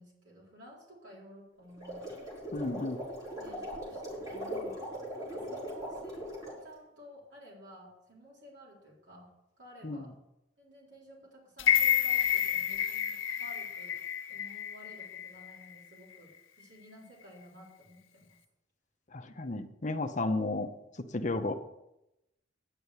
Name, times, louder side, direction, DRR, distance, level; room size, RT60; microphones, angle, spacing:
voice 1, 0.0-2.1 2.6-4.8 5.1-10.1 10.6-14.0 14.3-18.4, equal, 60° right, -4 dB, 4.1 m, -54 dB
sound 1, 1.7-6.6, equal, 15° right, 4.7 m, -39 dB
voice 2, 2.5-3.0 9.8-10.0 19.1-20.7 21.1-21.5, left 2 dB, 40° left, 7 dB, 0.8 m, -33 dB
sound 2, 11.6-15.7 16.1-16.2, left 10 dB, 85° left, 0.8 m, -29 dB
10.0 x 7.0 x 8.0 m, 0.89 s
head